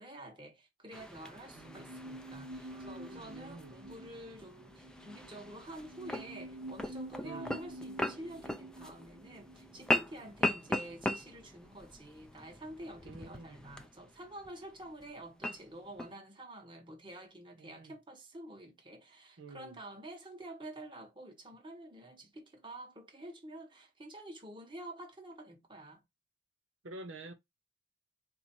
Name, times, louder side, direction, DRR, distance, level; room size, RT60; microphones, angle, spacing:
voice 1, 0.0-26.0, right 1 dB, 25° right, 1.2 m, -48 dB
sound 1, 0.9-16.1, left 1 dB, 5° left, 0.5 m, -40 dB
voice 2, 1.5-1.9 3.1-3.7 7.2-7.6 13.0-13.6 17.6-17.9 19.4-19.8 26.8-27.3, right 2 dB, 75° right, 0.8 m, -48 dB
sound 2, 1.6-10.9 11.2-11.3, right 1 dB, 50° right, 0.9 m, -49 dB
4.2 x 2.7 x 4.4 m
head